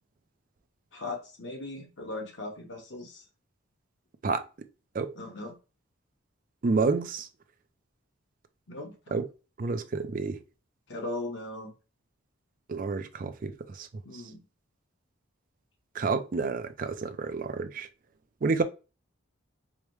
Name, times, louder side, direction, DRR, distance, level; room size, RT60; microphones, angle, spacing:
voice 1, 0.9-3.2 5.1-5.5 8.7-8.9 10.9-11.7 14.0-14.4, left 2 dB, 60° left, 1.0 m, -38 dB
voice 2, 6.6-7.3 9.1-9.3 9.6-10.4 12.7-13.9 14.1-14.2 15.9-17.9 18.4-18.6, right 4 dB, 40° right, 0.4 m, -29 dB
4.9 x 2.1 x 3.0 m
head